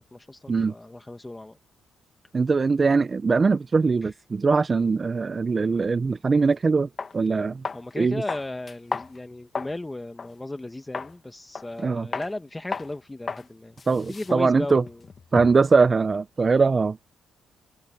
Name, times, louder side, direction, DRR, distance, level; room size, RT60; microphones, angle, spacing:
voice 1, 0.0-1.6 4.0-4.1 7.7-13.8 14.1-15.0, left 2 dB, 15° left, 1.2 m, -36 dB
voice 2, 2.3-7.6 8.0-8.2 11.8-12.1 13.9-14.8 15.3-17.0, right 4 dB, 30° right, 0.6 m, -21 dB
sound 1, 6.4-6.5 7.0-7.2 7.7-7.9 8.3-9.8 10.2-10.3 10.9-11.2 11.6-11.8 12.1-12.3 12.7-12.9 13.3-13.5 13.8-15.7, left 5 dB, 40° left, 1.8 m, -34 dB
cardioid pair, 90°, 0 cm